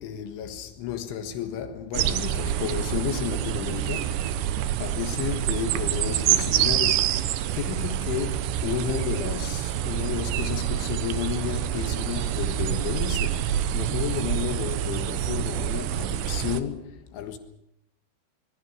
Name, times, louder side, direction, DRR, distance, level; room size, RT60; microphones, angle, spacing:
voice 1, 0.0-4.2 4.8-7.0 7.6-13.4 13.7-17.4, left 10 dB, 75° left, 3.8 m, -32 dB
sound 1, 1.9-16.6, right 11 dB, 75° right, 2.9 m, -27 dB
25.5 x 21.5 x 6.1 m
omnidirectional pair, 5.7 m